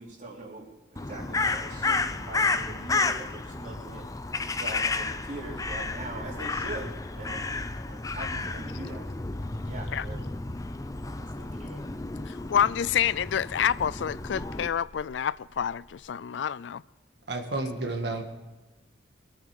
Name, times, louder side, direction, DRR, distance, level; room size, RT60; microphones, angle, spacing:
voice 1, 0.0-4.0 4.6-7.4 7.8-9.1 9.6-10.2 11.2-11.8, right 1 dB, 45° right, 3.5 m, -41 dB
Crow, 1.0-14.7, left 3 dB, 20° left, 0.5 m, -32 dB
sound 1, 5.1-16.0, equal, 40° left, 2.4 m, -50 dB
voice 2, 12.3-16.8, left 8 dB, 80° left, 0.4 m, -28 dB
voice 3, 17.3-18.2, right 2 dB, 70° right, 1.7 m, -31 dB
24.0 x 8.8 x 4.8 m
head